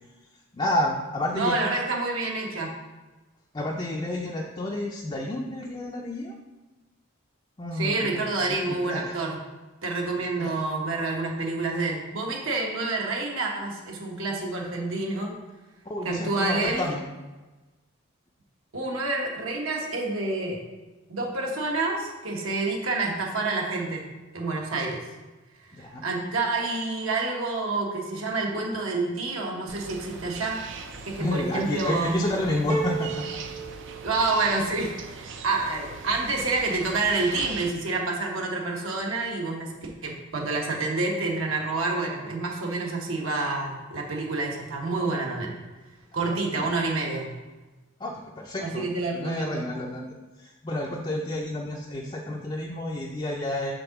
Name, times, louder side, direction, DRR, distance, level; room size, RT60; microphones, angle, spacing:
voice 1, 0.5-1.7 3.5-6.3 7.6-9.2 10.2-10.5 15.9-17.0 25.7-26.0 31.2-33.4 34.3-34.4 46.1-46.8 48.0-53.7, left 1 dB, 25° left, -1 dB, 0.5 m, -30 dB
voice 2, 1.3-2.7 7.7-9.4 9.8-15.3 16.0-16.9 18.7-20.6 21.1-24.0 24.3-25.0 25.8-30.6 31.1-32.2 34.0-45.5 46.1-47.3 48.6-49.7, right 3 dB, 75° right, -1 dB, 1.3 m, -28 dB
sound 1, 29.7-37.7, right 5 dB, 60° right, 0.5 m, -41 dB
sound 2, 32.7-34.7, right 4 dB, 25° right, 0.8 m, -33 dB
5.2 x 3.8 x 5.8 m, 1.2 s
head